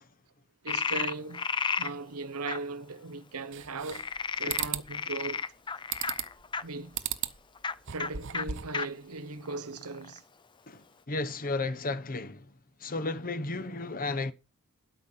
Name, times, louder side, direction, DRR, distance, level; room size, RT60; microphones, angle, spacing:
voice 1, 0.6-4.1 4.4-5.4 6.6-7.0 7.9-10.2, right 3 dB, 90° right, 1.0 m, -38 dB
Frog, 0.7-1.9 2.5-2.6 3.9-6.6 7.6-7.7 8.0-8.1 8.3-8.4 8.7-8.9 9.5-10.2, left 5 dB, 20° left, 0.5 m, -32 dB
sound 1, 3.5-4.2 4.5-4.9 5.9-6.4 6.9-7.4 7.8-8.8, right 10 dB, 60° right, 0.9 m, -35 dB
voice 2, 10.7-12.5 12.8-14.3, left 3 dB, 40° left, 0.9 m, -33 dB
12.5 x 5.9 x 6.9 m
head